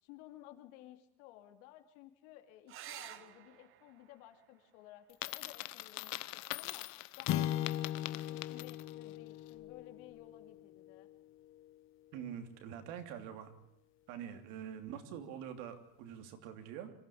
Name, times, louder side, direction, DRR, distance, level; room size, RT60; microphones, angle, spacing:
voice 1, 0.0-6.2 6.5-11.1, left 13 dB, 80° left, 6 dB, 2.9 m, -56 dB
sound 1, 2.7-7.7 9.6-10.2 13.7-13.8 14.1-14.2, right 12 dB, 40° right, 1.0 m, -55 dB
Coin (dropping), 5.1-9.0, left 20 dB, 60° left, 1.0 m, -43 dB
sound 2, 7.3-11.7, left 12 dB, 40° left, 0.9 m, -39 dB
voice 2, 12.1-13.5 14.1-16.9, right 9 dB, 70° right, 6 dB, 3.2 m, -45 dB
26.0 x 15.0 x 8.6 m, 0.79 s
cardioid pair, 175°, 33 cm